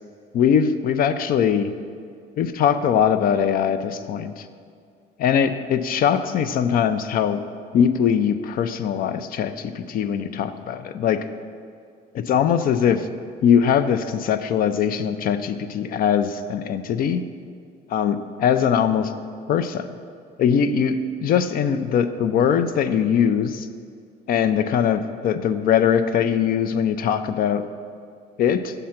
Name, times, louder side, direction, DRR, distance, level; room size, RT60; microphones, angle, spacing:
voice 1, 0.3-1.7 2.4-4.5 5.2-7.4 7.7-11.3 12.1-13.1 13.4-17.2 17.9-19.1 19.5-19.9 20.4-23.7 24.3-27.6 28.4-28.7, left 8 dB, 60° left, 11 dB, 0.5 m, -21 dB
7.4 x 6.8 x 5.8 m, 2.2 s
cardioid pair, 110°, 17 cm